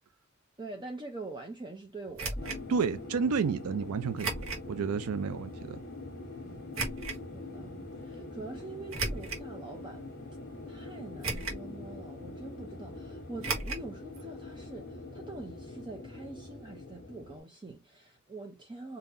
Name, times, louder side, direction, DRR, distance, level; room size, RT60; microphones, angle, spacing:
voice 1, 0.6-2.6 6.4-6.9 7.3-10.1 10.7-19.0, right 2 dB, 20° right, 0.5 m, -45 dB
sound 1, 2.2-2.6 4.2-4.7 5.2-5.3 6.7-7.2 8.9-9.5 10.1-10.2 11.2-11.7 12.0-12.1 13.4-13.9 14.1-14.2 14.5-14.6, right 3 dB, 65° right, 1.3 m, -34 dB
sound 2, 2.4-17.4, left 2 dB, 45° left, 1.0 m, -44 dB
voice 2, 2.7-4.4 4.7-5.8, right 5 dB, 85° right, 0.4 m, -30 dB
3.7 x 2.8 x 2.5 m
head